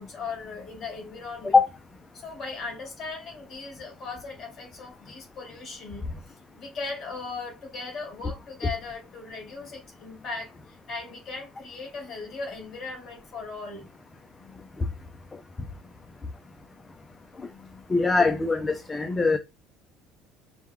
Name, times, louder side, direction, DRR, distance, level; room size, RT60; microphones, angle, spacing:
voice 1, 0.0-1.6 2.1-13.9 14.4-14.7 17.5-17.9 19.1-19.2, left 4 dB, 30° left, 2.2 m, -38 dB
voice 2, 17.9-19.4, left 4 dB, 15° left, 0.3 m, -21 dB
4.4 x 2.1 x 3.5 m
cardioid pair, 160°, 0 cm